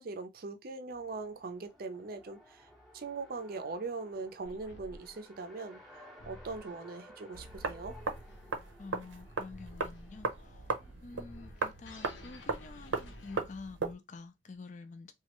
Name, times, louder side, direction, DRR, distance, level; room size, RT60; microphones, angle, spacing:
voice 1, 0.0-2.7 2.9-5.8 6.2-8.0, right 3 dB, 50° right, 0.5 m, -41 dB
Race car auto racing, 0.9-10.9, equal, ahead, 0.7 m, -57 dB
sound 1, 4.4-13.9, left 1 dB, 75° left, 0.8 m, -54 dB
sound 2, 7.3-13.9, right 4 dB, 90° right, 0.7 m, -38 dB
voice 2, 8.8-10.6 11.0-15.1, left 3 dB, 40° left, 0.4 m, -48 dB
3.0 x 2.3 x 3.0 m
head